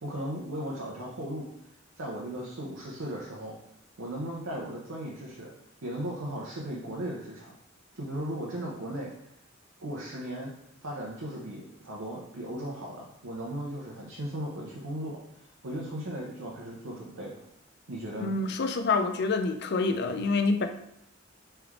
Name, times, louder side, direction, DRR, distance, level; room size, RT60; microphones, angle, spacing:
voice 1, 0.0-1.5 2.0-3.6 4.0-5.5 5.8-7.5 7.9-9.1 9.8-10.5 10.8-15.2 15.6-17.4 17.9-18.4, right 1 dB, 85° right, -4 dB, 0.8 m, -36 dB
voice 2, 18.2-20.7, left 3 dB, 55° left, 7 dB, 0.4 m, -27 dB
3.3 x 3.3 x 3.5 m, 0.78 s
head